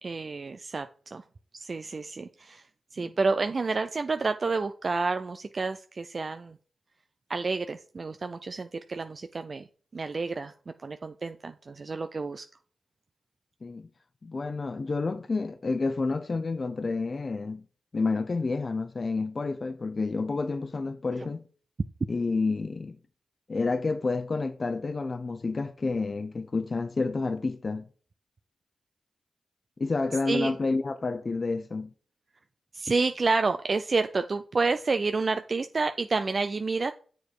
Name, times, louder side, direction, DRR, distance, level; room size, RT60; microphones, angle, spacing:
voice 1, 0.0-1.2 1.5-2.7 2.9-6.6 7.3-9.7 9.9-12.4 30.3-30.6 32.7-36.9, right 4 dB, 50° right, 0.4 m, -29 dB
voice 2, 14.2-17.6 17.9-21.4 22.1-23.0 23.5-27.9 29.8-31.9, left 3 dB, 45° left, 0.5 m, -29 dB
7.2 x 4.5 x 4.8 m
cardioid pair, 50°, 0 cm